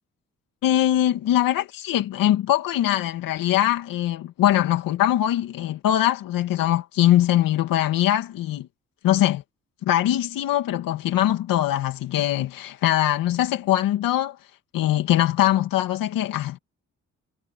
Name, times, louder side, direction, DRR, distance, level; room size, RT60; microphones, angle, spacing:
voice 1, 0.6-8.7 9.0-9.4 9.8-14.4 14.7-16.6, left 13 dB, 85° left, 2.3 m, -22 dB
supercardioid pair, 60°, 33 cm